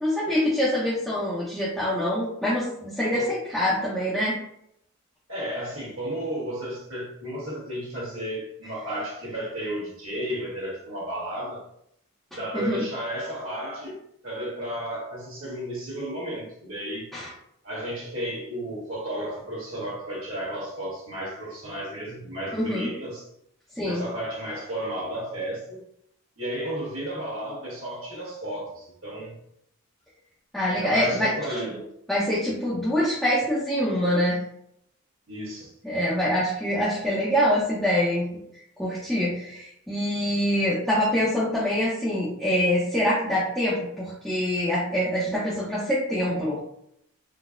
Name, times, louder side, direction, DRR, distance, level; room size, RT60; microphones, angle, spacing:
voice 1, 0.0-4.4 12.5-12.8 17.1-17.3 22.5-22.9 23.8-24.0 30.5-31.3 32.1-34.4 35.8-38.3 38.8-46.6, equal, ahead, -9 dB, 0.5 m, -25 dB
voice 2, 5.3-11.6 12.3-17.1 17.6-23.3 23.8-25.8 26.4-29.3 30.7-31.9 35.3-35.7, right 1 dB, 65° right, -6 dB, 1.4 m, -33 dB
3.9 x 2.0 x 2.4 m, 0.73 s
head